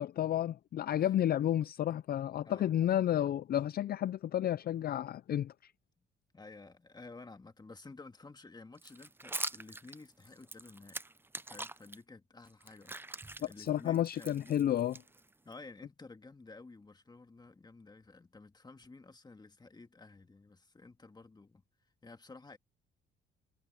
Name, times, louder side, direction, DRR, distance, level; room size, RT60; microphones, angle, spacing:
voice 1, 0.0-5.7 13.6-15.0, left 11 dB, 50° left, 0.4 m, -31 dB
voice 2, 6.3-11.0 11.4-14.6 15.4-21.6 22.0-22.6, left 3 dB, 20° left, 1.9 m, -53 dB
sound 1, 8.8-12.0 12.4-15.5, right 2 dB, 10° right, 0.7 m, -44 dB
cardioid pair, 90°, 20 cm